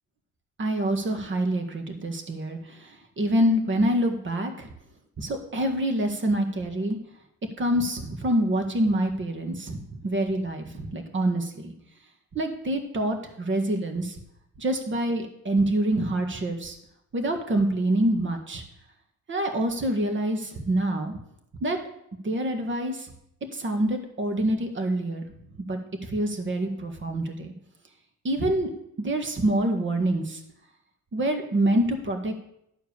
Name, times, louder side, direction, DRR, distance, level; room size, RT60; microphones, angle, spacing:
voice 1, 0.6-4.7 5.2-7.0 7.6-11.7 12.3-14.2 14.6-16.8 17.1-18.6 19.3-21.2 21.6-21.8 22.2-23.1 23.5-25.3 25.6-27.5 28.2-28.7 29.0-30.4 31.1-32.4, right 1 dB, 40° right, 5 dB, 1.7 m, -26 dB
11.5 x 4.6 x 7.0 m, 0.77 s
cardioid pair, 90°, 30 cm